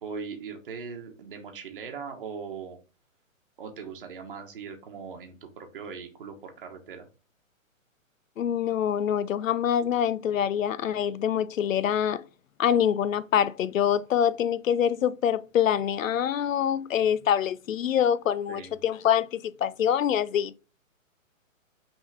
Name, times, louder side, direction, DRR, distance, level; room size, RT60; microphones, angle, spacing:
voice 1, 0.0-2.8 3.6-7.1 18.5-18.8, right 5 dB, 40° right, 1.2 m, -40 dB
voice 2, 8.4-12.2 12.6-20.6, left 9 dB, 70° left, 0.6 m, -25 dB
6.0 x 3.6 x 4.9 m
hypercardioid pair, 170°, 41 cm